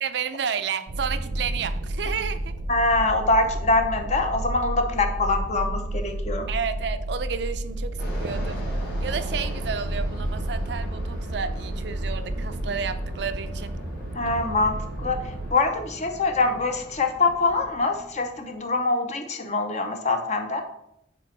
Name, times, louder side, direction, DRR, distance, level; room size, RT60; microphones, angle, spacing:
voice 1, 0.0-2.5 6.5-8.6 9.0-13.8, right 6 dB, 65° right, 11 dB, 0.4 m, -31 dB
sound 1, 0.9-15.5, right 1 dB, 90° right, 0.7 m, -31 dB
voice 2, 2.7-6.5 14.1-15.2 15.5-20.6, left 3 dB, 40° left, 5 dB, 0.6 m, -24 dB
Fixed-wing aircraft airplane, 8.0-18.8, left 1 dB, 60° left, 1.7 m, -42 dB
5.3 x 4.2 x 5.3 m, 0.82 s
head